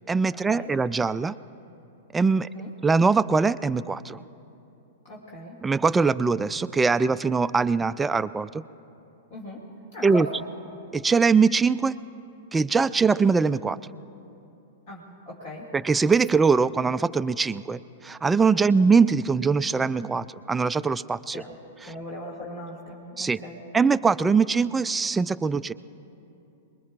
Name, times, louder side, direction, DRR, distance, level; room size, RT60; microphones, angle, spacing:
voice 1, 0.1-1.3 2.1-2.5 2.8-4.2 5.6-8.6 10.0-10.3 10.9-12.0 12.5-13.8 15.7-21.4 23.2-23.4 23.7-25.7, right 4 dB, 10° right, 14 dB, 0.3 m, -22 dB
voice 2, 2.4-2.7 5.0-5.6 9.3-9.7 9.9-10.4 14.9-15.7 18.6-18.9 21.3-21.6 21.8-23.6, left 1 dB, 50° left, -4 dB, 2.3 m, -39 dB
28.0 x 21.0 x 2.4 m, 2.9 s
figure-of-eight pair, 100°, 0 cm